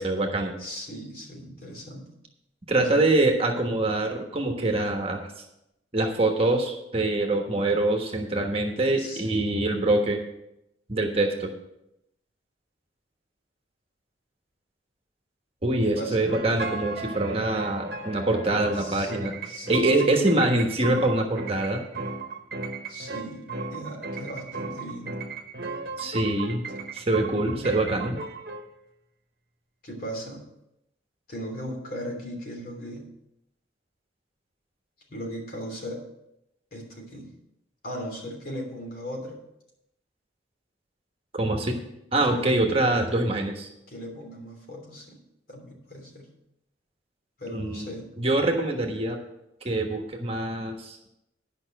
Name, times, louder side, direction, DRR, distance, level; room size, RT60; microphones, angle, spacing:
voice 1, 0.0-0.5 2.7-5.3 5.9-10.2 10.9-11.5 15.6-19.4 19.7-21.8 26.0-26.6 26.9-28.2 41.3-41.8 42.1-43.7 47.5-47.9 48.2-49.2 49.6-51.0, right 2 dB, 30° right, 3 dB, 1.3 m, -24 dB
voice 2, 0.6-2.1 2.8-3.0 9.0-9.4 15.9-16.3 18.8-19.1 19.4-20.2 22.9-23.4 23.7-25.1 29.8-30.4 31.3-33.1 35.1-36.0 36.7-37.3 37.8-39.4 42.3-42.5 43.9-45.2 45.5-46.3 47.4-48.1, equal, 50° left, 0 dB, 3.2 m, -37 dB
sound 1, 16.3-28.7, right 3 dB, 55° right, 1.1 m, -36 dB
10.5 x 5.6 x 7.6 m, 0.85 s
head